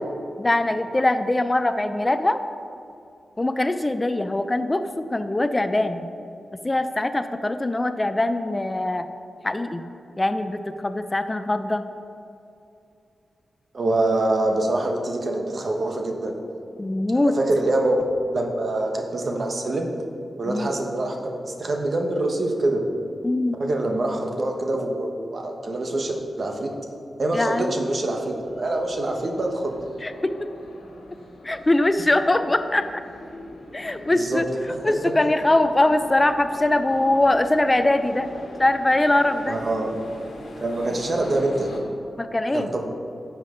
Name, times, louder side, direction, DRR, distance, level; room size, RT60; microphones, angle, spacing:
voice 1, 0.4-2.4 3.4-6.1 6.6-9.0 9.4-9.8 10.2-11.9 16.8-17.4 20.5-20.7 23.2-23.6 27.3-27.8 30.0-30.5 31.4-32.8 33.7-34.4 34.8-38.3 38.6-39.6 42.2-42.7, left 2 dB, 25° left, 10 dB, 0.4 m, -22 dB
voice 2, 13.7-16.4 17.2-18.1 18.3-19.9 20.4-22.8 23.6-26.7 27.2-29.8 34.1-34.4 34.9-35.0 39.5-39.9 40.6-41.7 42.5-42.8, right 2 dB, 55° right, 2 dB, 1.2 m, -25 dB
sound 1, 28.3-41.8, left 1 dB, 85° left, 1.4 m, -42 dB
10.5 x 7.4 x 3.8 m, 2.6 s
cardioid pair, 70°, 0 cm